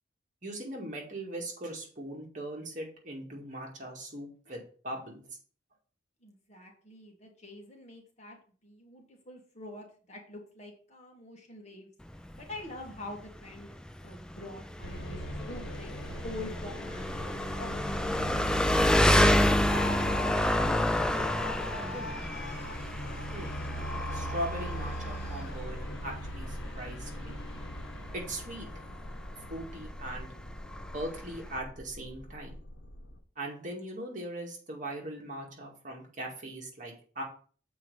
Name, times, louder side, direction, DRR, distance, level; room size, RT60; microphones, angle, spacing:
voice 1, 0.4-5.2 23.3-23.5 24.1-25.8 26.0-27.4 28.1-28.7 29.5-30.3 30.9-32.6 33.4-37.2, right 1 dB, 40° right, 0 dB, 2.1 m, -40 dB
voice 2, 6.2-8.4 8.6-11.9 12.4-13.8 14.0-15.2 15.5-15.9 16.2-18.7, left 1 dB, 35° left, 1 dB, 1.8 m, -46 dB
Engine, 12.0-31.6, left 1 dB, 5° left, 0.3 m, -30 dB
sound 1, 14.8-33.2, equal, 80° left, 1.2 m, -40 dB
Screaming, 19.7-25.6, left 4 dB, 55° left, 1.6 m, -42 dB
7.6 x 4.6 x 5.4 m, 0.42 s
head